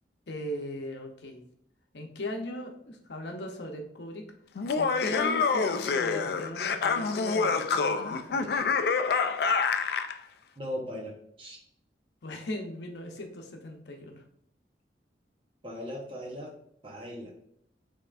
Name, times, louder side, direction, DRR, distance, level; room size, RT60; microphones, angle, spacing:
voice 1, 0.3-1.4 1.9-4.3 4.7-8.8 12.2-14.2, left 1 dB, 80° left, 3 dB, 0.7 m, -39 dB
Laughter, 4.6-10.1, left 5 dB, 65° left, 0.3 m, -27 dB
voice 2, 10.6-11.6 15.6-16.5 16.8-17.3, equal, 30° right, -1 dB, 0.9 m, -38 dB
5.4 x 3.5 x 2.5 m, 0.69 s
head